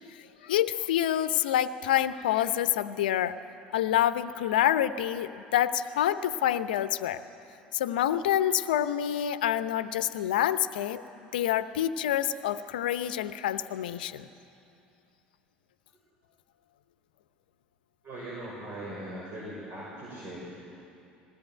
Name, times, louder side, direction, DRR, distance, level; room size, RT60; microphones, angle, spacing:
voice 1, 0.1-3.3 3.7-7.2 7.7-11.0 11.3-14.3, left 11 dB, 75° left, 13 dB, 0.7 m, -27 dB
voice 2, 18.0-20.6, right 1 dB, 45° right, -5 dB, 6.1 m, -40 dB
20.5 x 17.5 x 9.1 m, 2.7 s
hypercardioid pair, 70°, 5 cm